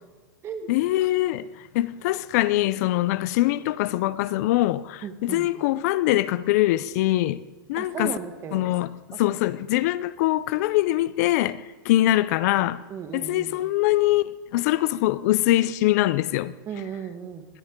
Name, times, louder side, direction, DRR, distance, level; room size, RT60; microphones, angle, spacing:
voice 1, 0.7-1.5 1.7-7.4 7.7-8.2 8.5-8.9 9.2-12.8 13.1-16.5, left 15 dB, 45° left, 0.5 m, -23 dB
voice 2, 5.0-5.5 7.8-8.7 9.3-9.4 12.9-13.6 16.7-17.5, right 7 dB, 20° right, 1.1 m, -35 dB
20.5 x 11.5 x 3.7 m
supercardioid pair, 160°, 12 cm